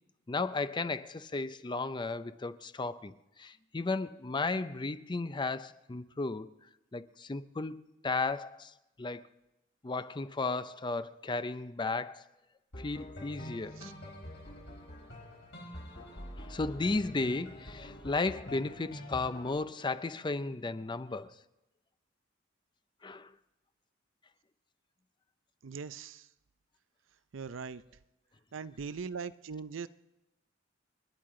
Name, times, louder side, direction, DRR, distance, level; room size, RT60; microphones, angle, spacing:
voice 1, 0.3-6.5 6.9-9.2 9.8-12.2 12.8-13.8 15.9-16.0 16.4-21.3 23.0-23.3, left 3 dB, 25° left, 0.5 m, -34 dB
sound 1, 12.7-19.5, left 1 dB, 60° left, 4.6 m, -46 dB
voice 2, 25.6-26.3 27.3-27.8 28.5-29.9, right 5 dB, 80° right, 0.5 m, -40 dB
29.5 x 10.0 x 3.8 m
head